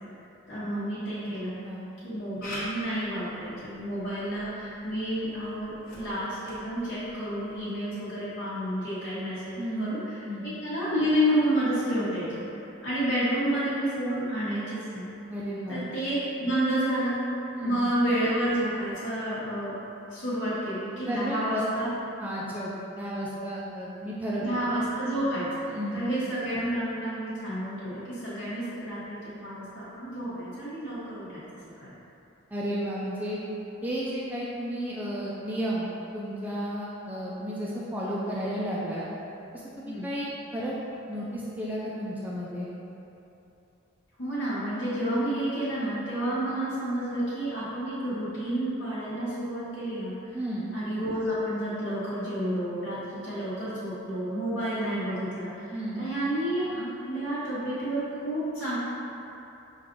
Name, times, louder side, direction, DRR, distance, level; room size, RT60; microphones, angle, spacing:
voice 1, 0.5-1.6 2.0-10.0 10.4-12.4 12.8-15.1 15.7-17.2 17.6-19.8 20.1-21.9 24.4-25.7 25.9-31.4 31.8-31.9 39.8-40.1 44.2-50.4 50.7-58.8, right 1 dB, 70° left, -12 dB, 1.1 m, -30 dB
Camera, 2.4-7.8, equal, 40° left, 1.1 m, -44 dB
voice 2, 9.6-10.0 10.3-10.5 15.3-15.8 17.5-17.8 21.1-21.7 22.2-22.7 23.0-24.5 25.7-26.0 32.5-33.4 33.8-39.1 39.5-40.8 41.1-42.7 50.3-50.7 55.7-56.0, equal, 10° right, -7 dB, 0.4 m, -33 dB
5.9 x 2.4 x 3.7 m, 2.9 s
head